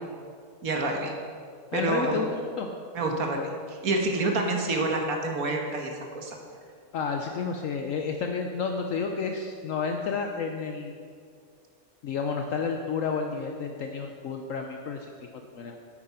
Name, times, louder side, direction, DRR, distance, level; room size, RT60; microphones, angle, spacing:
voice 1, 0.6-1.1 1.7-2.2 2.9-6.4, right 2 dB, 65° right, 2 dB, 1.7 m, -28 dB
voice 2, 1.7-2.7 6.9-11.0 12.0-15.8, left 5 dB, 65° left, 3 dB, 1.0 m, -31 dB
8.7 x 8.6 x 5.6 m, 2.2 s
omnidirectional pair, 1.6 m